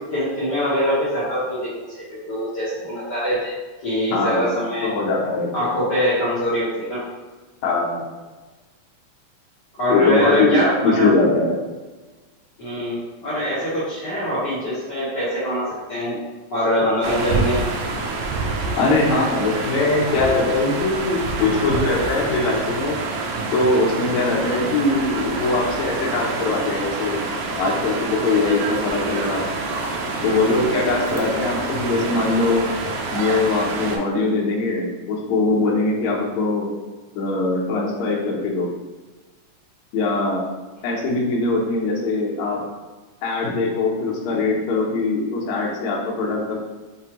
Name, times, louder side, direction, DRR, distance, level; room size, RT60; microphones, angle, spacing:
voice 1, 0.1-3.5 3.8-4.9 5.5-7.0 9.8-11.1 12.6-16.2 16.5-17.6, equal, 55° left, -11 dB, 1.2 m, -23 dB
voice 2, 4.1-4.5 4.8-5.7 7.6-8.0 9.9-11.5 18.8-23.0 23.5-27.2 27.6-29.5 30.2-32.7 33.1-36.7 37.1-38.7 39.9-40.4 40.8-42.6 43.2-46.6, left 3 dB, 75° left, -3 dB, 2.0 m, -21 dB
sound 1, 17.0-34.0, right 3 dB, 80° right, 1.8 m, -27 dB
5.9 x 2.6 x 2.9 m, 1.3 s
omnidirectional pair, 3.4 m